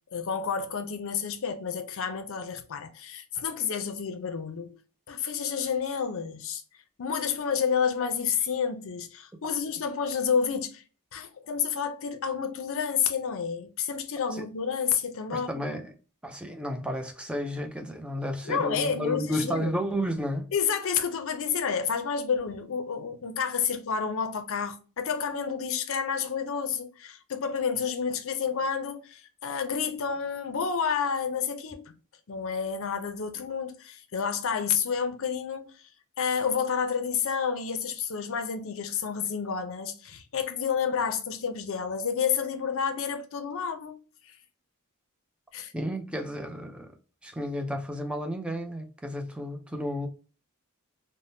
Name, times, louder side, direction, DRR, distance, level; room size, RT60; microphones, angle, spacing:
voice 1, 0.1-4.7 5.1-6.6 7.0-10.8 11.1-15.6 18.5-19.7 20.5-31.9 32.3-35.7 36.2-44.0 45.5-45.7, left 6 dB, 65° left, 0.5 m, -30 dB
voice 2, 15.3-15.9 16.2-20.5 45.7-46.9 47.2-50.1, equal, 5° right, 0.4 m, -32 dB
3.4 x 2.1 x 2.6 m
head